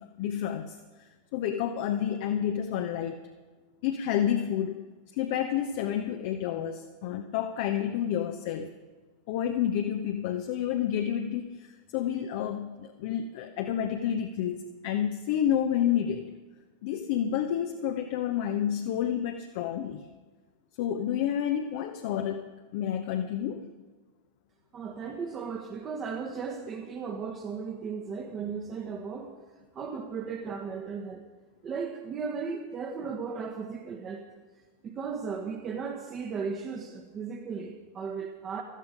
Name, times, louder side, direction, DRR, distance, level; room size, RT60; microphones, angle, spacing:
voice 1, 0.0-3.2 3.8-4.8 5.1-8.7 9.3-16.3 16.8-20.1 20.8-23.6, left 9 dB, 50° left, 6 dB, 0.8 m, -30 dB
voice 2, 24.7-29.3 29.7-31.2 31.6-34.3 34.8-38.6, right 5 dB, 25° right, 3 dB, 1.3 m, -36 dB
16.5 x 13.0 x 5.1 m, 1.3 s
figure-of-eight pair, 90°, 0 cm